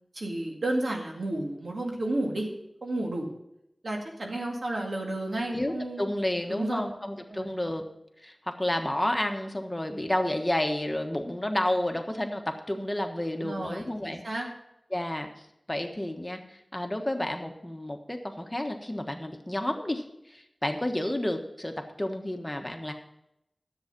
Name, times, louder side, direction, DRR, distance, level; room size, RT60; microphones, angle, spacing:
voice 1, 0.1-2.5 2.8-3.3 3.8-6.1 6.5-6.8 7.3-7.5 13.4-14.5, right 1 dB, 75° right, 0 dB, 2.2 m, -32 dB
voice 2, 5.5-7.8 8.2-14.2 14.9-15.3 15.7-22.9, left 1 dB, 20° left, 4 dB, 1.4 m, -31 dB
10.5 x 8.0 x 6.0 m, 0.81 s
wide cardioid pair, 45°, 0 cm